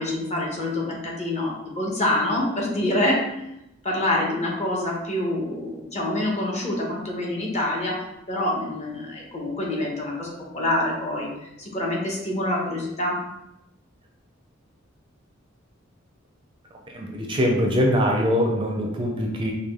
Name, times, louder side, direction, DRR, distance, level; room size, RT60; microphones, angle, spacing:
voice 1, 0.0-3.2 3.8-13.2, left 1 dB, 35° left, -2 dB, 0.9 m, -26 dB
voice 2, 16.9-19.5, equal, 25° right, 0 dB, 0.5 m, -23 dB
4.8 x 2.2 x 3.5 m, 0.87 s
head